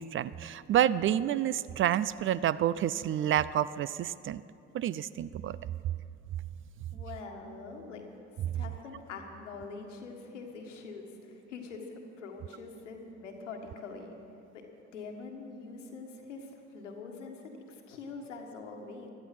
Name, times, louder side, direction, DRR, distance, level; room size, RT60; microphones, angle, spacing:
voice 1, 0.0-4.4 4.7-5.6 8.5-8.6, right 11 dB, 35° right, 18 dB, 0.4 m, -29 dB
voice 2, 6.9-8.0 8.5-11.9 12.2-14.1 14.5-14.6 14.9-19.1, left 4 dB, 85° left, 3 dB, 1.6 m, -44 dB
17.0 x 12.0 x 6.0 m, 2.7 s
hypercardioid pair, 60°, 36 cm